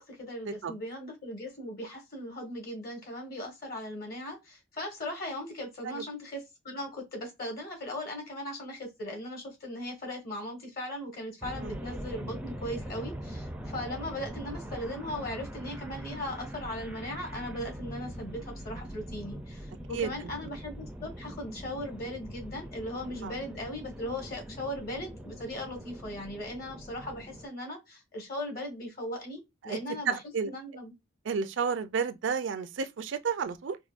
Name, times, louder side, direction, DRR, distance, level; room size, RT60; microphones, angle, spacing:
voice 1, 0.0-30.2 30.4-30.9, left 1 dB, 50° left, 1.5 m, -38 dB
sound 1, 11.4-27.5, equal, 5° right, 0.4 m, -42 dB
voice 2, 30.1-30.5 31.3-33.8, right 6 dB, 70° right, 0.4 m, -31 dB
4.6 x 2.2 x 2.5 m
head